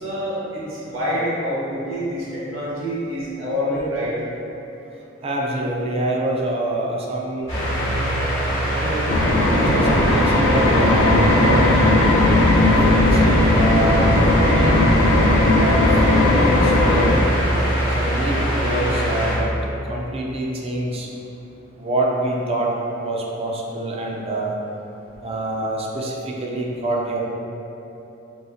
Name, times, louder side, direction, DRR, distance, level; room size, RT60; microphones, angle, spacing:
voice 1, 0.0-4.2, equal, 75° right, -7 dB, 1.0 m, -26 dB
voice 2, 5.2-7.5 8.8-9.1 9.5-11.8 12.6-14.8 15.6-17.1 17.9-19.5 19.9-21.1 21.8-22.7 23.0-24.5 25.2-27.2, right 1 dB, 30° right, -2 dB, 0.3 m, -26 dB
sound 1, 7.5-19.4, right 1 dB, 30° left, 1.2 m, -22 dB
sound 2, 9.1-17.1, left 2 dB, 75° left, 0.4 m, -17 dB
4.0 x 2.6 x 2.4 m, 3.0 s
head